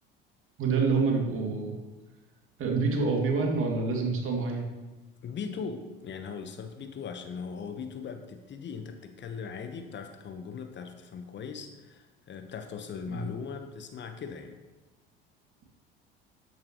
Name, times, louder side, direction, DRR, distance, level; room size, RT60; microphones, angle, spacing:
voice 1, 0.6-1.7 2.6-4.7 13.1-13.2, right 4 dB, 45° right, 1 dB, 2.5 m, -27 dB
voice 2, 5.2-14.6, left 6 dB, 40° left, 7 dB, 1.2 m, -39 dB
13.0 x 9.4 x 3.1 m, 1.2 s
figure-of-eight pair, 65°, 29 cm